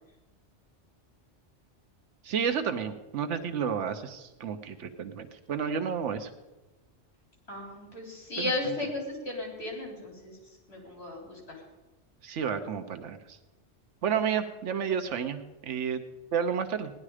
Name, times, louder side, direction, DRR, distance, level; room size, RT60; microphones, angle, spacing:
voice 1, 2.2-6.3 8.4-8.5 12.2-13.2 14.0-16.0 16.3-16.9, right 7 dB, 85° right, 9 dB, 1.1 m, -31 dB
voice 2, 7.5-10.3 10.7-11.6, left 2 dB, 60° left, -1 dB, 4.2 m, -35 dB
17.5 x 11.0 x 4.9 m, 1.1 s
omnidirectional pair, 1.2 m